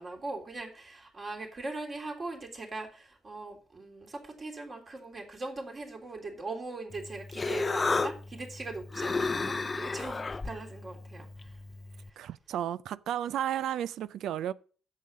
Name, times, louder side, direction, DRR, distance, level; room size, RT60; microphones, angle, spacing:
voice 1, 0.0-11.6 11.9-12.2, right 3 dB, 35° right, 3.4 m, -40 dB
Human voice, 6.9-12.1, left 4 dB, 30° left, 0.6 m, -33 dB
voice 2, 12.2-14.5, right 11 dB, 80° right, 0.4 m, -33 dB
8.3 x 7.6 x 5.3 m
cardioid pair, 90°, 0 cm